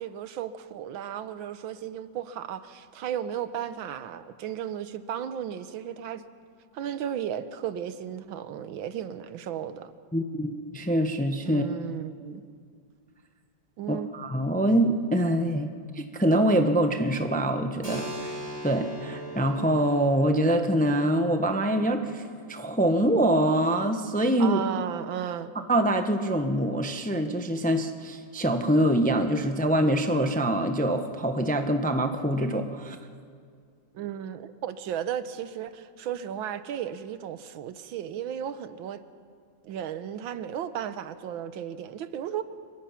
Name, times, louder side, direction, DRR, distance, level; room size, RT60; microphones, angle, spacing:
voice 1, 0.0-6.2 6.7-9.9 11.4-12.4 13.8-14.1 24.4-25.5 33.9-39.0 39.6-42.4, right 9 dB, 85° right, 12 dB, 1.6 m, -34 dB
voice 2, 10.1-11.6 13.9-15.7 15.9-18.3 18.6-22.2 22.5-24.6 25.7-33.0, right 1 dB, 10° left, 6 dB, 0.6 m, -24 dB
Keyboard (musical), 17.8-25.2, right 1 dB, 20° right, 4.6 m, -42 dB
26.0 x 22.5 x 5.8 m, 2.1 s
omnidirectional pair, 2.1 m